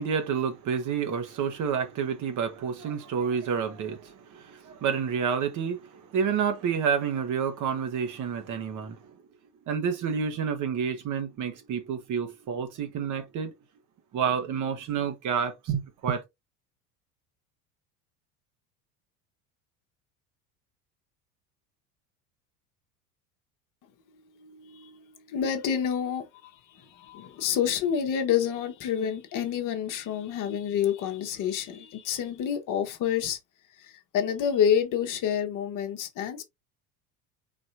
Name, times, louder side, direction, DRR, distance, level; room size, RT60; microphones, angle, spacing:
voice 1, 0.0-9.0 9.7-13.5 14.1-16.2, right 7 dB, 40° right, 1.3 m, -29 dB
voice 2, 24.3-33.4 33.8-36.4, left 8 dB, 40° left, 1.2 m, -28 dB
4.3 x 4.2 x 2.6 m
figure-of-eight pair, 70°, 47 cm